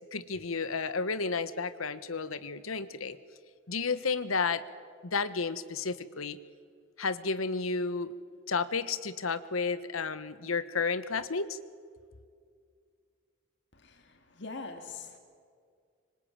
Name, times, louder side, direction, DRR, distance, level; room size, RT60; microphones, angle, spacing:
voice 1, 0.1-3.2 3.7-4.6 5.0-6.4 7.0-8.1 8.5-11.6, left 4 dB, 90° left, 14 dB, 1.3 m, -32 dB
voice 2, 13.8-15.2, left 4 dB, 55° left, 6 dB, 2.1 m, -43 dB
25.5 x 25.0 x 8.9 m, 2.2 s
head